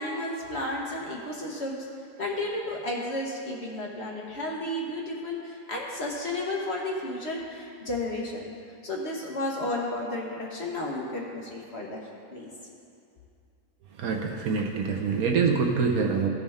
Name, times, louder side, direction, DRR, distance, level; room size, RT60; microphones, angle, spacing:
voice 1, 0.0-1.9 2.2-8.5 8.8-12.0 12.3-12.5, left 1 dB, 45° left, -2 dB, 1.2 m, -32 dB
voice 2, 13.9-16.3, right 5 dB, 65° right, 2 dB, 1.2 m, -25 dB
15.5 x 5.4 x 3.5 m, 2.5 s
omnidirectional pair, 1.7 m